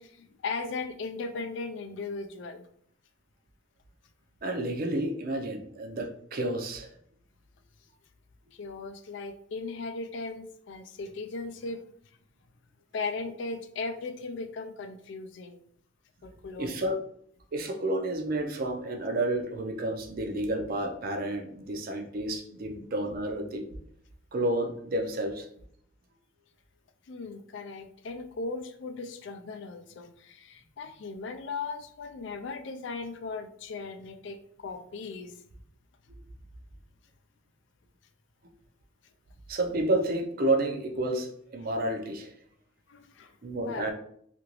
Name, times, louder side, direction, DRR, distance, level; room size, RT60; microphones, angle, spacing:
voice 1, 0.0-2.7 8.5-11.8 12.9-15.6 16.2-16.7 22.7-22.8 27.1-35.4 42.9-43.3 43.7-43.9, left 4 dB, 65° left, 7 dB, 0.4 m, -37 dB
voice 2, 4.4-6.9 16.6-16.9 17.5-23.6 24.3-25.5 39.5-42.3 43.4-43.9, right 1 dB, 50° right, 4 dB, 0.5 m, -30 dB
2.9 x 2.5 x 3.0 m, 0.66 s
head